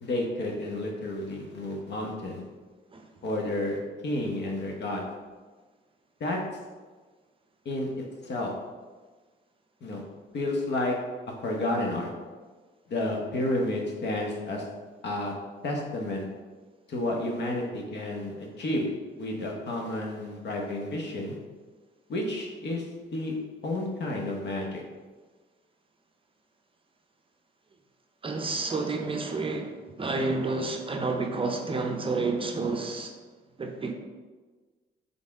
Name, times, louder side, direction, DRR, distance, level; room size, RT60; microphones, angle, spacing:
voice 1, 0.0-2.4 3.2-3.8 4.0-5.0 6.2-6.4 7.6-7.9 8.2-8.5 9.8-10.0 10.3-10.9 11.4-12.1 12.9-14.6 15.0-15.3 15.6-16.3 16.9-18.9 19.2-21.4 22.1-22.8 23.1-23.3 23.6-24.8, left 1 dB, 60° left, 0 dB, 1.0 m, -30 dB
voice 2, 28.2-33.1 33.6-33.9, right 3 dB, 25° right, 3 dB, 0.5 m, -30 dB
4.1 x 3.5 x 3.5 m, 1.4 s
cardioid pair, 90°, 20 cm